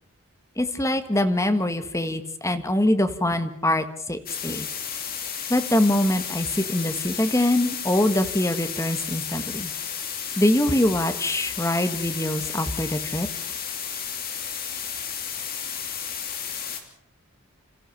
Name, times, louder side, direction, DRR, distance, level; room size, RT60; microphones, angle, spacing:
voice 1, 0.6-4.7 5.5-9.7 10.4-13.3, left 1 dB, 15° left, 8 dB, 1.4 m, -24 dB
sound 1, 4.3-16.8, left 7 dB, 40° left, 3.0 m, -33 dB
27.5 x 15.0 x 7.0 m, 0.72 s
head